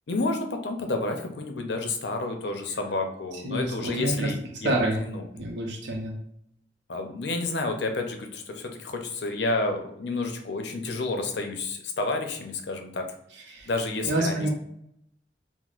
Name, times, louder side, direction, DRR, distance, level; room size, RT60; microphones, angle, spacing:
voice 1, 0.1-4.4 4.6-4.7 5.0-5.2 6.9-13.1 13.7-14.5, left 3 dB, 70° left, 4 dB, 0.6 m, -30 dB
voice 2, 3.3-4.3 4.6-5.0 5.3-6.1 13.3-13.7 14.0-14.5, right 1 dB, 75° right, -2 dB, 0.6 m, -28 dB
6.0 x 2.0 x 2.4 m, 0.73 s
head